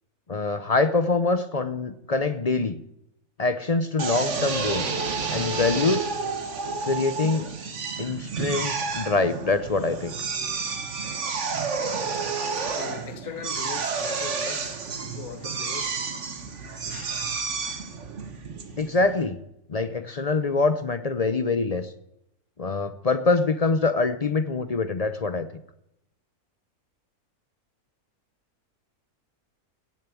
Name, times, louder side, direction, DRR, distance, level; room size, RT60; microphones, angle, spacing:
voice 1, 0.3-2.8 3.4-4.9 5.3-6.1 6.8-7.5 8.0-10.1 18.8-19.4 19.7-21.9 22.6-25.5, left 3 dB, 45° left, 0.5 m, -24 dB
Drill, 4.0-19.3, right 5 dB, 55° right, 1.7 m, -30 dB
voice 2, 12.7-16.0 16.9-17.2, left 8 dB, 75° left, 1.4 m, -40 dB
16.5 x 7.0 x 8.3 m
omnidirectional pair, 1.6 m